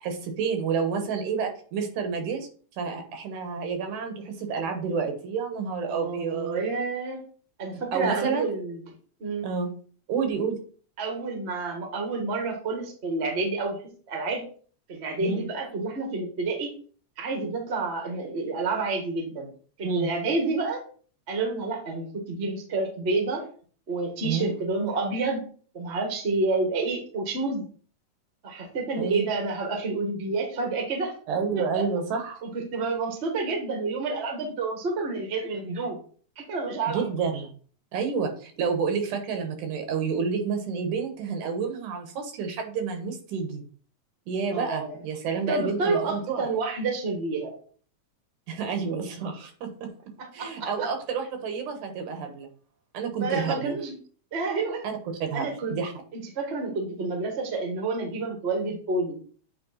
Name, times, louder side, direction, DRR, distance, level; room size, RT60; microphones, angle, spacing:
voice 1, 0.0-2.5 2.8-6.6 7.9-8.5 9.4-9.7 10.1-10.6 15.2-15.4 19.8-20.1 24.2-24.5 29.0-29.3 31.3-32.4 36.9-37.5 37.9-43.6 44.3-46.4 48.5-49.9 50.3-52.5 52.9-53.8 54.8-54.9 55.2-55.9, right 5 dB, 85° right, 5 dB, 2.7 m, -29 dB
voice 2, 5.9-7.2 7.6-8.8 9.2-9.5 11.0-13.8 14.1-14.4 14.9-16.7 17.2-19.5 19.8-20.8 21.3-23.5 23.9-25.4 25.7-27.6 28.4-31.1 31.7-31.9 32.4-36.0 36.4-37.0 44.5-45.0 45.5-47.5 50.4-50.9 53.2-53.9 54.3-54.9 55.3-55.8 56.1-59.2, right 3 dB, 35° right, 2 dB, 1.0 m, -29 dB
8.7 x 3.3 x 4.1 m, 0.43 s
omnidirectional pair, 3.4 m